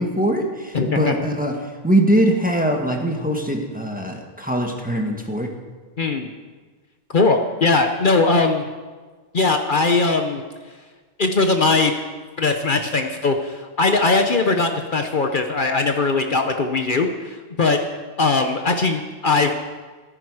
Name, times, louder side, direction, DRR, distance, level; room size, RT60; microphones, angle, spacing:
voice 1, 0.0-5.5, right 1 dB, 10° right, 2 dB, 1.6 m, -22 dB
voice 2, 0.7-1.1 6.0-6.3 7.1-8.7 9.3-10.4 11.2-11.9 12.4-17.8 18.2-19.5, left 3 dB, 55° left, 5 dB, 1.0 m, -20 dB
15.0 x 14.0 x 4.9 m, 1.4 s
omnidirectional pair, 1.1 m